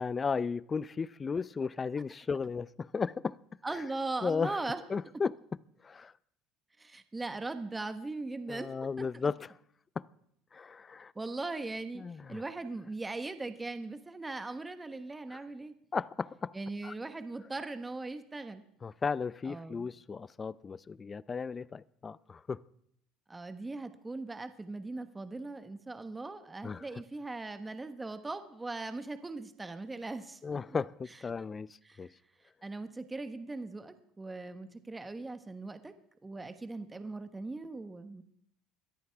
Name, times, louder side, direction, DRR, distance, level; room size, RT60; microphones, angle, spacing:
voice 1, 0.0-3.4 3.7-3.8 4.2-4.6 4.9-5.3 5.8-6.1 8.5-9.6 10.0-10.1 10.5-11.1 12.0-12.4 15.3-15.4 15.9-16.5 16.8-16.9 18.8-22.6 26.6-26.8 30.4-31.7 32.0-32.1, left 5 dB, 30° left, 0.5 m, -35 dB
voice 2, 3.6-4.8 6.8-8.7 9.0-9.1 11.1-12.0 12.3-15.7 16.5-18.6 19.5-19.9 23.3-30.8 31.8-32.0 32.6-35.9 36.2-38.2, right 3 dB, 15° right, 1.2 m, -39 dB
21.5 x 13.5 x 3.5 m
supercardioid pair, 90°, 0 cm